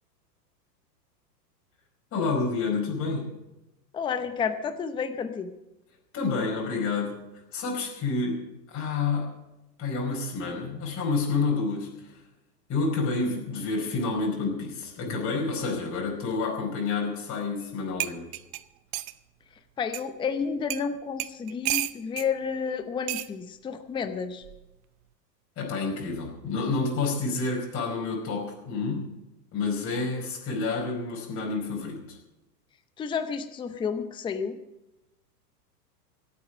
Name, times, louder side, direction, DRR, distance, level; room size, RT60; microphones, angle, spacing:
voice 1, 2.1-3.3 6.1-7.2 7.5-8.4 8.7-9.3 9.8-12.2 12.7-18.3 25.6-29.1 29.5-32.2, left 4 dB, 25° left, -2 dB, 4.9 m, -29 dB
voice 2, 3.9-5.5 19.8-24.4 33.0-34.6, left 6 dB, 10° left, 9 dB, 0.7 m, -31 dB
sound 1, 17.6-17.7 18.0-19.2 19.9-20.0 20.7-20.9 21.2-22.3 23.1-23.3 24.4-24.7, right 17 dB, 40° right, 0.7 m, -31 dB
25.5 x 8.6 x 5.0 m, 0.95 s
hypercardioid pair, 130°, 49 cm